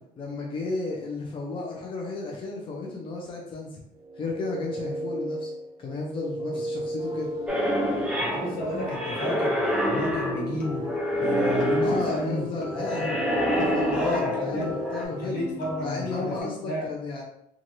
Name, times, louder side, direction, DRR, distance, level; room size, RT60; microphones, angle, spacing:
voice 1, 0.2-3.8 4.2-5.5 5.8-7.3 11.8-13.1 13.5-15.4 15.8-17.2, left 3 dB, 35° left, -1 dB, 0.6 m, -33 dB
sound 1, 3.9-11.8, right 1 dB, 45° right, 0.4 m, -37 dB
sound 2, 7.0-16.4, left 4 dB, 60° left, 0.8 m, -39 dB
sound 3, 7.5-15.0, equal, 5° right, 0.6 m, -27 dB
voice 2, 8.2-9.6 9.9-10.9 11.2-12.4 12.8-13.2 13.9-14.7 15.1-16.8, left 1 dB, 80° left, -4 dB, 1.3 m, -32 dB
3.1 x 2.4 x 2.7 m, 0.76 s
cardioid pair, 135°, 15 cm